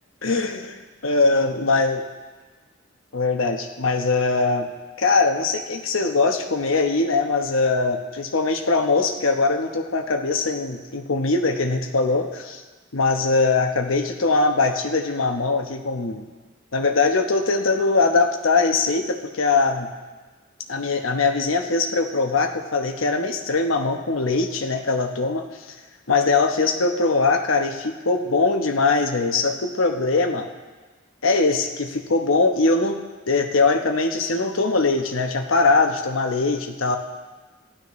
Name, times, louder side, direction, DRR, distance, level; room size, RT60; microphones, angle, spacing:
voice 1, 0.2-2.0 3.1-4.7 5.0-12.6 12.9-16.3 16.7-19.9 20.7-25.7 26.1-30.5 31.2-37.0, left 3 dB, 85° left, 4 dB, 1.0 m, -21 dB
16.0 x 11.5 x 3.2 m, 1.3 s
head